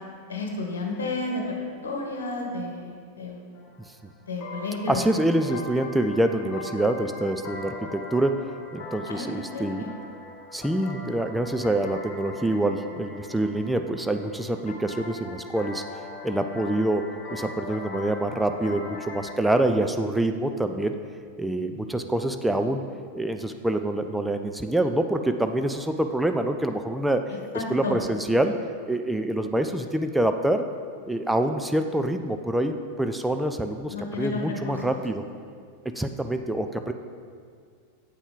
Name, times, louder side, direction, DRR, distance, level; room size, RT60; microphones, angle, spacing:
voice 1, 0.3-1.4 1.8-3.4 4.3-5.0 9.1-9.2 9.5-9.9 27.5-28.0 33.9-35.0, left 3 dB, 65° left, 1 dB, 1.1 m, -31 dB
sound 1, 3.6-19.3, left 2 dB, 40° left, 1.3 m, -41 dB
voice 2, 4.9-8.5 8.7-9.9 10.5-15.8 16.2-21.0 21.4-22.9 23.1-28.5 28.9-30.6 31.1-35.2 35.9-36.9, right 1 dB, 5° right, 6 dB, 0.4 m, -26 dB
8.1 x 6.0 x 3.8 m, 2.1 s
figure-of-eight pair, 90°, 0 cm